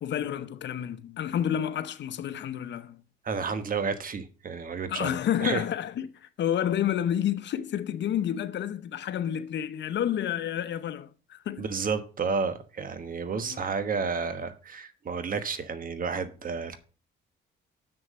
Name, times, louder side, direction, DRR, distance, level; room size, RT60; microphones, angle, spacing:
voice 1, 0.0-3.0 4.9-11.6 13.3-13.6, left 10 dB, 65° left, 0.8 m, -30 dB
voice 2, 3.2-5.6 11.6-16.8, right 5 dB, 45° right, 1.2 m, -31 dB
7.0 x 6.6 x 5.4 m
cardioid pair, 90°, 20 cm